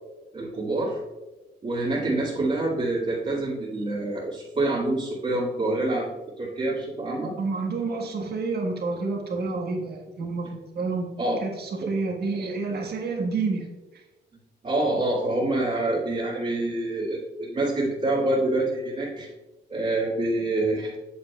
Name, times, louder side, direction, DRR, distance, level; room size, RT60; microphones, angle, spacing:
voice 1, 0.3-1.0 1.6-6.1 6.4-7.3 11.2-11.5 11.8-11.9 14.6-19.3 19.7-21.0, right 2 dB, 35° right, -8 dB, 2.2 m, -26 dB
voice 2, 7.4-11.1 11.4-13.6, right 3 dB, 55° right, 1 dB, 1.6 m, -29 dB
8.5 x 7.3 x 2.4 m, 1.1 s
cardioid pair, 90°, 20 cm